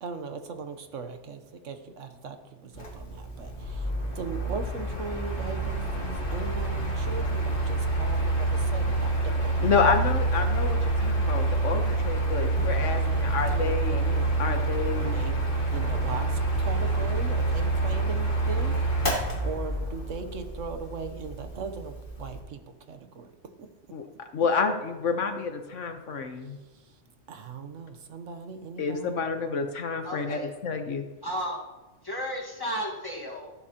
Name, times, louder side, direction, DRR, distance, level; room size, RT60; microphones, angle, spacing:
voice 1, 0.0-10.1 10.4-10.5 12.5-14.3 15.0-19.1 19.4-23.3 23.6-23.7 26.4-27.0 27.3-29.2, right 5 dB, 85° right, 8 dB, 1.3 m, -39 dB
Mechanical fan, 2.7-22.4, right 2 dB, 45° left, 1.9 m, -27 dB
voice 2, 9.6-14.0 14.4-15.1 23.9-26.6 28.8-31.0, left 5 dB, 80° left, 6 dB, 1.4 m, -29 dB
voice 3, 30.0-30.5 31.2-31.6 32.0-33.5, equal, 20° left, -2 dB, 1.7 m, -33 dB
14.0 x 11.5 x 2.9 m, 1.1 s
omnidirectional pair, 1.3 m